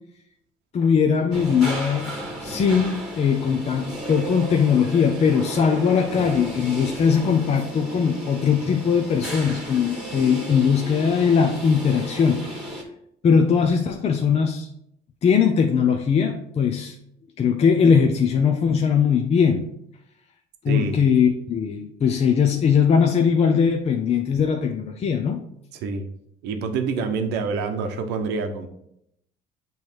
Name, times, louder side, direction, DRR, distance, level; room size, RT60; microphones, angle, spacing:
voice 1, 0.7-12.5 13.2-14.7 15.2-16.9 17.4-19.7 20.6-25.4, left 6 dB, 40° left, 3 dB, 0.6 m, -20 dB
sound 1, 1.3-12.8, right 1 dB, 5° right, 1.7 m, -34 dB
voice 2, 20.7-21.0 25.7-26.1 26.4-28.7, right 5 dB, 90° right, 6 dB, 0.8 m, -27 dB
6.9 x 3.2 x 4.5 m, 0.76 s
cardioid pair, 110°, 17 cm